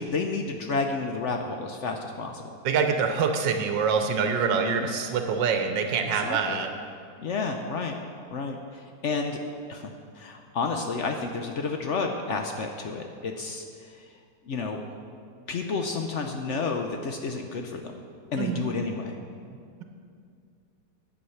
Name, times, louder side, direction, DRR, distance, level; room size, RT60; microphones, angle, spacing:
voice 1, 0.0-2.5 4.4-4.9 6.2-6.6 7.2-7.9 8.3-9.4 9.7-14.0 14.5-14.8 15.5-18.0 18.3-19.2, left 4 dB, 65° left, 4 dB, 0.7 m, -31 dB
voice 2, 2.6-6.7 18.4-18.7, right 6 dB, 85° right, 5 dB, 1.4 m, -25 dB
9.6 x 7.9 x 5.7 m, 2.3 s
omnidirectional pair, 1.9 m